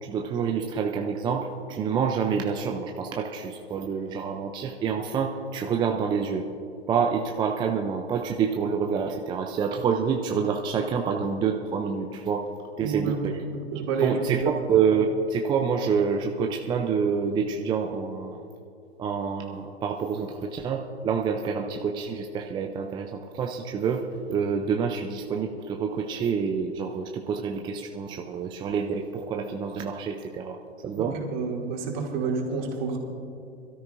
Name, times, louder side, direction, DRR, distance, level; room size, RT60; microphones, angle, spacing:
voice 1, 0.0-6.4 6.9-12.5 12.8-13.3 14.0-14.4 14.7-18.4 19.0-24.0 24.3-30.6 30.8-31.2, right 6 dB, 15° right, 3 dB, 0.5 m, -27 dB
voice 2, 12.8-13.2 13.7-14.5 31.0-33.0, right 5 dB, 45° right, 0 dB, 2.6 m, -29 dB
22.5 x 13.0 x 2.6 m, 2.7 s
hypercardioid pair, 115°, 33 cm